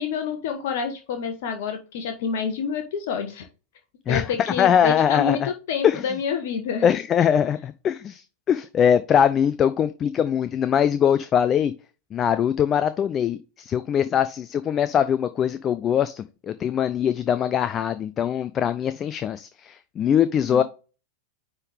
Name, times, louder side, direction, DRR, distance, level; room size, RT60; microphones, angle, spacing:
voice 1, 0.0-3.5 4.1-6.9 20.5-20.6, left 6 dB, 50° left, 1.2 m, -28 dB
voice 2, 4.1-5.5 5.8-6.0 6.8-11.7 12.1-20.6, left 8 dB, 25° left, 0.4 m, -22 dB
9.7 x 3.7 x 3.4 m
figure-of-eight pair, 90°, 0 cm